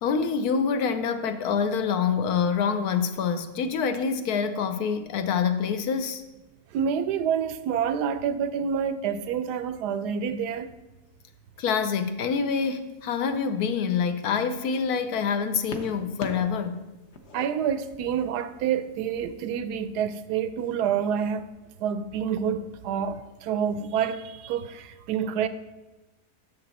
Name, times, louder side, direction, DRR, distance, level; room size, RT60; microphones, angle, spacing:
voice 1, 0.0-6.2 11.6-16.8, left 6 dB, 75° left, 1.2 m, -26 dB
voice 2, 6.7-10.7 17.3-21.5 21.8-25.5, right 8 dB, 90° right, 1.2 m, -28 dB
sound 1, 12.6-12.9 13.7-15.0 15.7-16.6 16.9-18.3 19.2-19.3, left 3 dB, 50° left, 1.0 m, -40 dB
9.2 x 6.7 x 4.1 m
omnidirectional pair, 1.7 m